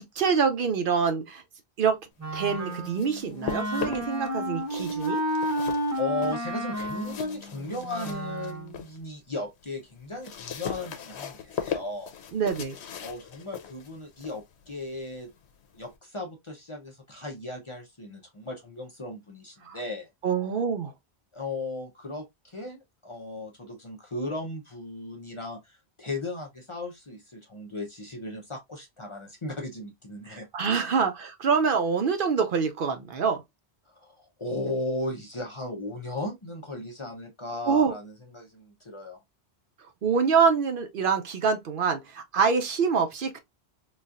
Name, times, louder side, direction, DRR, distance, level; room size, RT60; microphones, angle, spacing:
voice 1, 0.0-1.4 1.8-2.0 2.3-5.2 12.3-12.8 19.6-19.8 20.2-20.9 30.3-33.4 37.6-37.9 40.0-43.4, right 6 dB, 60° right, 0.7 m, -25 dB
Wind instrument woodwind instrument, 2.2-8.7, equal, 15° right, 0.7 m, -32 dB
sound 1, 2.7-4.3 4.6-9.0 9.4-16.0, left 8 dB, 85° left, 0.9 m, -39 dB
voice 2, 6.0-12.1 13.0-15.3 15.7-20.1 21.3-30.5 33.9-39.2, left 2 dB, 35° left, 0.6 m, -36 dB
4.0 x 2.4 x 2.4 m
omnidirectional pair, 1.1 m